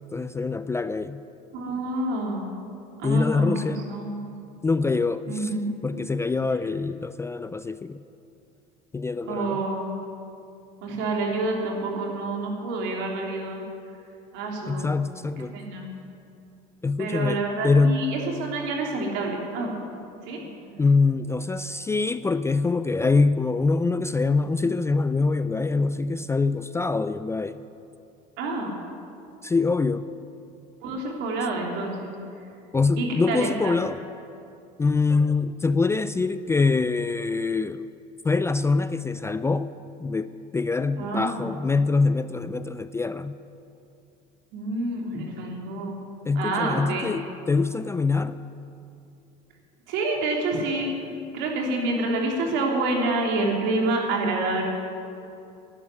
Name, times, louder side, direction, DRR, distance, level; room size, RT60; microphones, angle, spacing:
voice 1, 0.1-1.2 3.0-3.8 4.6-5.5 5.8-8.0 8.9-9.6 14.7-15.6 16.8-18.0 20.8-27.6 29.4-30.1 32.7-34.0 34.8-37.9 38.2-39.7 40.0-43.3 46.2-48.4, left 4 dB, 15° left, 13 dB, 0.4 m, -24 dB
voice 2, 1.5-2.5 3.0-4.1 5.3-5.7 9.3-9.9 10.8-13.6 14.3-14.9 15.5-15.9 17.0-19.7 20.3-20.8 28.4-28.7 30.8-32.1 33.0-33.8 41.0-41.5 44.5-46.0 46.4-47.1 49.9-50.9 51.3-54.6, right 2 dB, 70° right, 0 dB, 3.5 m, -28 dB
11.5 x 11.0 x 9.7 m, 2.6 s
supercardioid pair, 105°, 20 cm